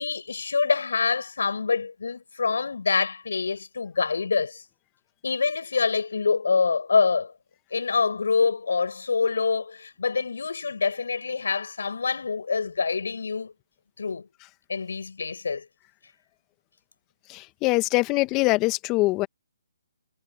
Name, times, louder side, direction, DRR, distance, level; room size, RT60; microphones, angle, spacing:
voice 1, 0.0-4.6 5.2-7.3 7.7-13.5 14.0-14.3 14.7-15.7, left 5 dB, 75° left, 7.9 m, -26 dB
voice 2, 17.3-19.3, left 22 dB, 20° left, 1.6 m, -23 dB
hypercardioid pair, 150°, 0 cm